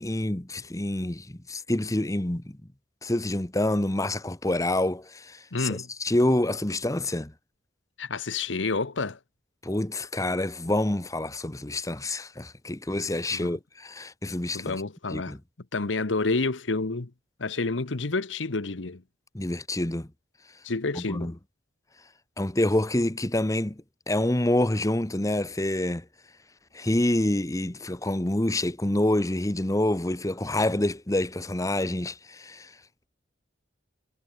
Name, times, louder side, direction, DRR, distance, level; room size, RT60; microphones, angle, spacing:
voice 1, 0.0-2.6 3.0-7.3 9.6-14.8 15.1-15.4 19.3-20.1 20.9-21.3 22.4-26.0 26.7-32.7, left 1 dB, 20° left, 1.1 m, -27 dB
voice 2, 5.5-5.9 8.0-9.2 13.3-13.6 14.5-15.4 15.7-17.1 17.4-19.0 20.6-21.3, left 3 dB, 90° left, 1.1 m, -29 dB
head